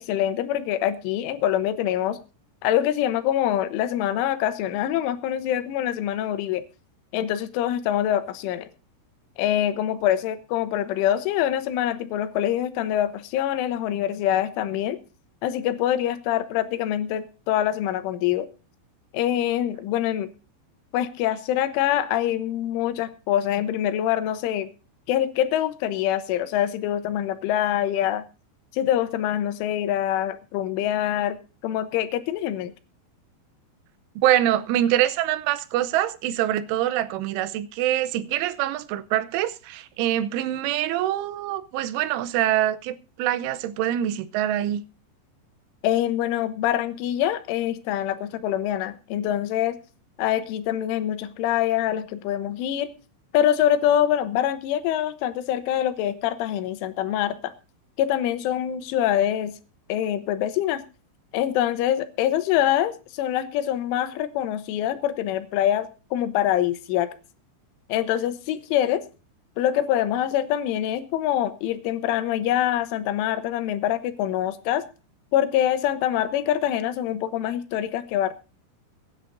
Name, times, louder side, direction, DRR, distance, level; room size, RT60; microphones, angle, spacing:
voice 1, 0.0-2.2 2.6-6.6 7.1-8.7 9.4-15.0 15.4-18.5 19.1-20.3 20.9-24.7 25.1-28.2 28.7-31.4 31.6-32.7 45.8-49.8 50.2-52.9 53.3-57.5 58.0-59.5 59.9-60.8 61.3-67.1 67.9-69.0 69.6-74.8 75.3-78.3, left 11 dB, 85° left, 3.5 m, -25 dB
voice 2, 34.2-44.8, right 12 dB, 85° right, 3.2 m, -24 dB
22.5 x 10.0 x 2.6 m
omnidirectional pair, 5.5 m